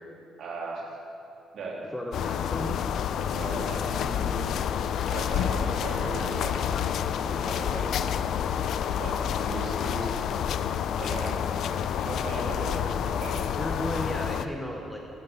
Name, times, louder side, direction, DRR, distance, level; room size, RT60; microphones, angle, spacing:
voice 1, 0.4-0.8 1.5-1.8 3.3-4.5 5.1-6.7 7.2-8.1 9.0-10.2 11.0-13.5, right 2 dB, 60° right, -4 dB, 2.9 m, -37 dB
voice 2, 1.9-2.8 13.6-15.0, equal, 5° left, 0 dB, 0.9 m, -34 dB
sound 1, 2.1-14.5, left 8 dB, 65° left, 0.4 m, -29 dB
12.5 x 7.8 x 5.4 m, 2.6 s
cardioid pair, 115°, 0 cm